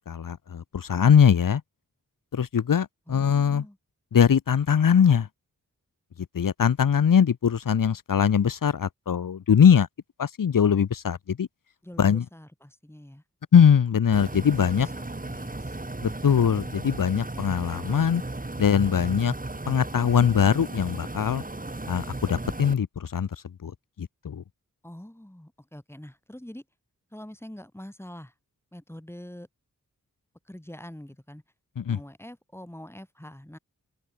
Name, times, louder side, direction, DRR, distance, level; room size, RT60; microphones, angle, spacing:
voice 1, 0.1-1.6 2.3-3.6 4.1-5.3 6.3-9.9 10.2-11.5 12.0-12.2 13.5-14.9 16.0-18.2 18.6-19.3 19.7-21.4 21.9-23.3 23.6-23.7 24.0-24.4 31.8-32.0, left 7 dB, 75° left, 1.0 m, -21 dB
voice 2, 3.1-3.8 11.8-13.2 14.6-15.8 24.8-26.6 27.1-28.3 28.7-29.5 30.5-31.4 31.9-33.6, left 1 dB, 5° left, 6.1 m, -44 dB
sound 1, 14.1-22.7, right 2 dB, 25° right, 5.4 m, -36 dB
wide cardioid pair, 80°, 34 cm